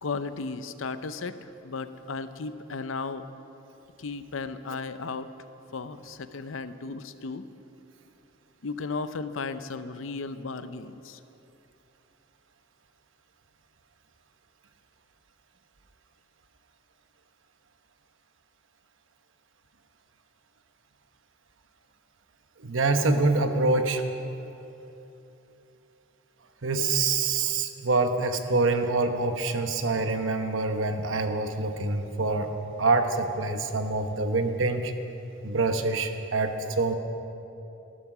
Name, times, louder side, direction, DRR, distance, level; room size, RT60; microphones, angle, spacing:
voice 1, 0.0-1.3 1.6-3.2 4.0-5.3 5.7-7.4 8.6-11.2, left 4 dB, 70° left, 11 dB, 0.6 m, -35 dB
voice 2, 22.6-24.0 26.6-32.5 32.8-34.9 35.4-36.9, right 3 dB, 70° right, 6 dB, 1.1 m, -25 dB
14.5 x 13.0 x 6.1 m, 2.9 s
head